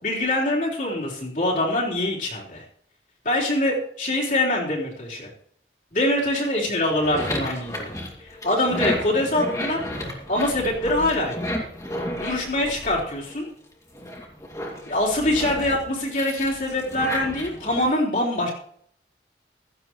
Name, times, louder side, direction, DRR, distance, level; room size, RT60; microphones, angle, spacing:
voice 1, 0.0-2.6 3.2-5.3 5.9-7.9 8.2-9.8 10.3-11.4 12.2-13.5 14.9-18.5, left 1 dB, 45° left, -5 dB, 4.1 m, -24 dB
sound 1, 6.8-13.5 13.9-17.8, left 1 dB, 20° left, 2.5 m, -32 dB
16.0 x 14.5 x 3.2 m, 0.65 s
head